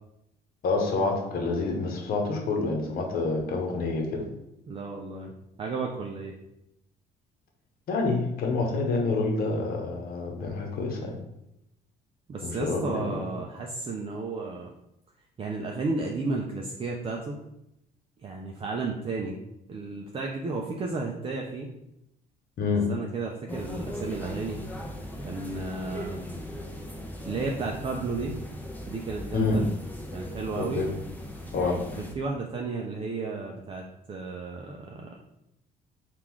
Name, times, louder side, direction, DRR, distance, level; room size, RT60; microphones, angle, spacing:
voice 1, 0.6-4.3 7.9-11.2 12.4-13.2 22.6-22.9 29.3-29.6 30.6-30.9 31.5-31.8, left 3 dB, 60° left, 2 dB, 1.0 m, -27 dB
voice 2, 4.7-6.4 12.3-14.7 15.4-17.4 18.2-19.4 19.7-21.7 22.9-24.6 25.2-26.3 27.2-28.4 28.9-29.7 30.1-30.8 32.0-35.2, right 3 dB, 35° right, 0 dB, 0.5 m, -33 dB
sound 1, 23.5-32.1, left 1 dB, 10° left, 0.7 m, -38 dB
3.7 x 2.5 x 4.5 m, 0.84 s
cardioid pair, 110°, 17 cm